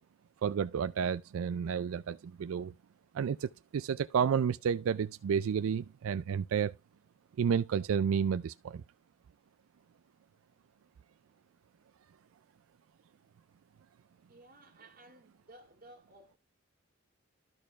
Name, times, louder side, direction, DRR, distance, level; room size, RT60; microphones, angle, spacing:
voice 1, 0.4-2.7 3.1-6.7 7.4-8.8, right 7 dB, 90° right, 0.4 m, -31 dB
voice 2, 14.3-16.4, right 1 dB, 45° right, 3.0 m, -56 dB
12.5 x 6.6 x 2.4 m
head